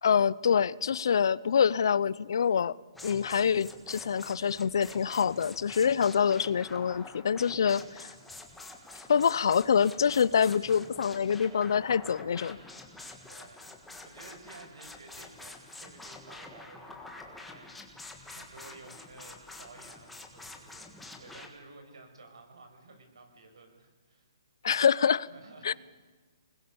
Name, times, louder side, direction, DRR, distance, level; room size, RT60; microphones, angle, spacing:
voice 1, 0.0-2.7 3.0-8.1 9.1-12.6 24.6-25.3 25.6-25.7, left 7 dB, 60° left, 0.6 m, -26 dB
sound 1, 2.9-21.5, left 2 dB, ahead, 1.6 m, -47 dB
voice 2, 13.3-20.9 21.2-24.3 25.2-25.8, right 3 dB, 80° right, 6.3 m, -53 dB
25.5 x 20.5 x 7.2 m
hypercardioid pair, 170°, 3 cm